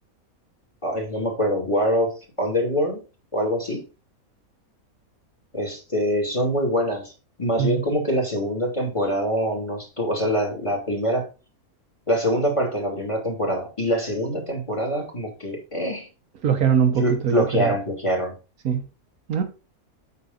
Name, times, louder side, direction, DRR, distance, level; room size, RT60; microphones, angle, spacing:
voice 1, 0.8-3.0 3.3-3.8 5.5-7.1 7.4-11.2 12.1-16.1 17.0-18.3, equal, 20° left, 2.5 m, -24 dB
voice 2, 16.4-17.7 18.6-18.8 19.3-19.4, right 7 dB, 75° right, 1.5 m, -21 dB
8.4 x 5.4 x 3.9 m
omnidirectional pair, 1.5 m